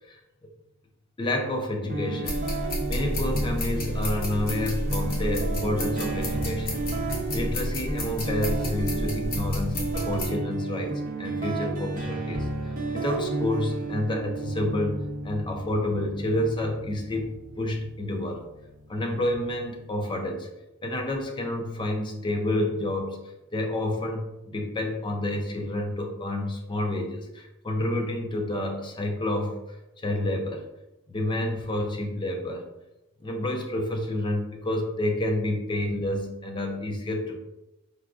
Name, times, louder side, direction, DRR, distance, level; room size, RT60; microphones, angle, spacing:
voice 1, 1.2-6.9 7.3-10.9 11.2-18.5 18.9-20.5 20.8-23.2 23.5-29.5 30.0-30.6 31.1-32.7 33.2-37.4, left 1 dB, 20° left, 2 dB, 0.4 m, -29 dB
sound 1, 1.9-19.9, right 2 dB, 40° right, 0.6 m, -33 dB
sound 2, 2.2-10.3, left 1 dB, 45° left, 0.8 m, -31 dB
4.7 x 2.2 x 2.4 m, 0.97 s
head